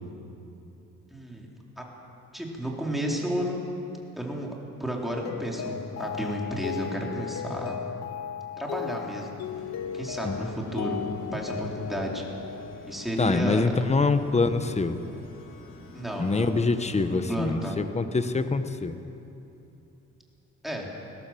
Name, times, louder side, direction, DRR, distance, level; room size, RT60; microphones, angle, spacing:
voice 1, 1.1-1.5 1.8-1.9 2.3-3.7 4.2-4.5 4.8-7.8 8.6-9.3 9.9-11.0 11.3-12.2 12.9-13.7 15.9-16.7 17.1-17.8 20.6-20.9, equal, ahead, -2 dB, 4.2 m, -32 dB
Mallet percussion, 5.2-13.4, left 8 dB, 60° left, 0.9 m, -36 dB
sound 1, 9.4-17.4, left 3 dB, 80° left, 3.1 m, -47 dB
voice 2, 13.2-15.0 16.2-19.0, left 3 dB, 20° left, 10 dB, 1.2 m, -25 dB
20.5 x 16.5 x 7.6 m, 2.9 s
cardioid pair, 90°, 30 cm